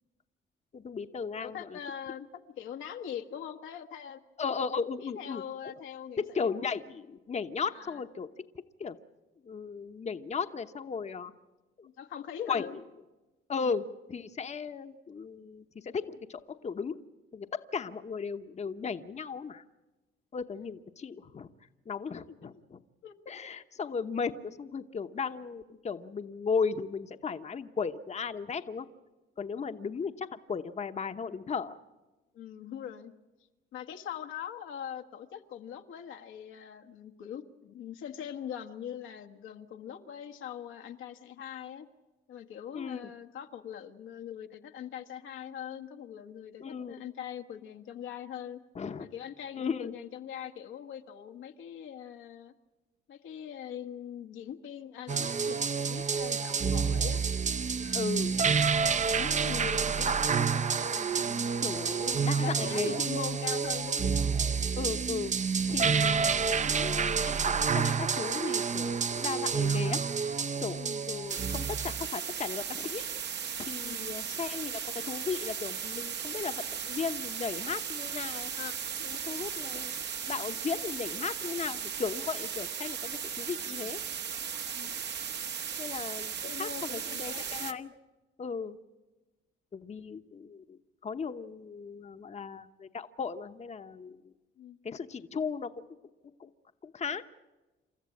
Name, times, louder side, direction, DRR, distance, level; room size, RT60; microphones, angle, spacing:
voice 1, 0.7-1.8 4.4-5.4 6.2-8.3 8.5-9.0 9.4-11.3 11.8-11.9 12.5-12.7 13.5-17.0 17.3-19.6 20.3-21.5 21.9-22.8 23.3-28.9 29.4-31.8 42.7-43.1 46.6-46.9 48.7-49.1 49.6-49.9 57.9-58.4 61.6-63.0 64.7-65.3 65.7-67.4 67.7-70.0 70.6-70.8 71.1-73.0 73.6-74.8 75.1-78.5 79.0-84.0 85.8-87.9 88.4-88.8 89.7-94.3 94.8-95.8 96.4-96.5 96.8-97.2, left 5 dB, 35° left, 8 dB, 1.0 m, -36 dB
voice 2, 1.4-2.3 2.6-4.2 5.0-6.6 7.7-8.0 11.8-12.8 13.6-13.7 22.3-22.5 23.0-23.4 29.6-29.8 32.3-33.1 33.7-41.9 42.3-48.6 49.0-52.5 53.1-57.2 57.7-58.5 59.0-64.1 70.8-71.1 73.8-74.1 78.6-78.7 79.0-79.2 84.7-85.0 86.4-87.5 94.6-94.8, left 9 dB, 85° left, 5 dB, 1.5 m, -42 dB
sound 1, 55.1-72.1, right 6 dB, 35° right, 0.7 m, -29 dB
sound 2, 71.3-87.7, right 7 dB, 60° right, 1.3 m, -37 dB
28.5 x 13.5 x 8.5 m, 1.1 s
cardioid pair, 90°, 20 cm